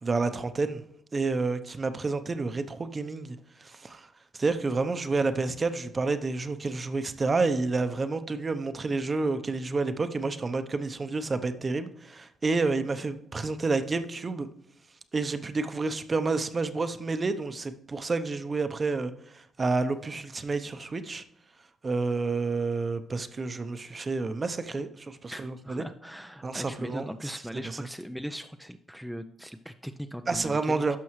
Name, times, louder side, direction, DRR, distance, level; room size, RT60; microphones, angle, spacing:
voice 1, 0.0-0.8 1.1-4.1 4.3-14.5 15.1-21.2 21.8-25.8 26.4-27.1 30.3-31.0, right 3 dB, 30° right, 10 dB, 0.7 m, -29 dB
voice 2, 25.3-30.8, equal, ahead, 7 dB, 0.4 m, -39 dB
11.5 x 6.2 x 3.1 m, 0.74 s
cardioid pair, 90°, 0 cm